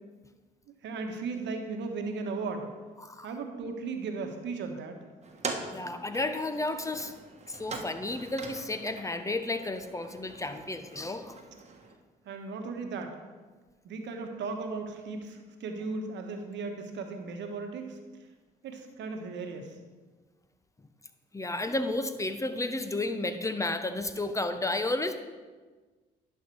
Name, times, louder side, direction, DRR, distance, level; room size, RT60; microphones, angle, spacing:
voice 1, 0.8-2.7 3.2-5.0 12.2-13.2 13.8-18.0 18.6-19.8, right 4 dB, 65° right, 5 dB, 1.3 m, -36 dB
sound 1, 5.2-11.9, right 3 dB, 35° right, 1.4 m, -42 dB
voice 2, 5.7-7.1 7.5-11.3 21.3-25.2, left 2 dB, 15° left, 9 dB, 0.9 m, -32 dB
10.5 x 5.6 x 4.6 m, 1.4 s
supercardioid pair, 60°, 20 cm